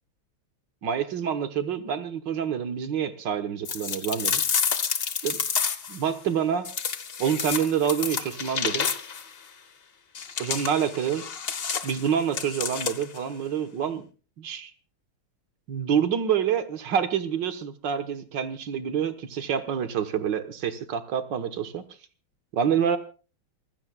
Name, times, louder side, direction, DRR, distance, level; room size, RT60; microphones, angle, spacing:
voice 1, 0.8-4.4 5.2-5.4 5.9-6.7 7.2-8.9 10.4-11.2 11.8-14.1 14.4-14.7 15.7-21.8 22.5-23.0, right 8 dB, 65° right, 9 dB, 1.9 m, -27 dB
sound 1, 3.6-6.0 6.6-9.3 10.1-13.2, left 6 dB, 50° left, 0.7 m, -29 dB
27.0 x 16.0 x 2.3 m, 0.35 s
omnidirectional pair, 2.2 m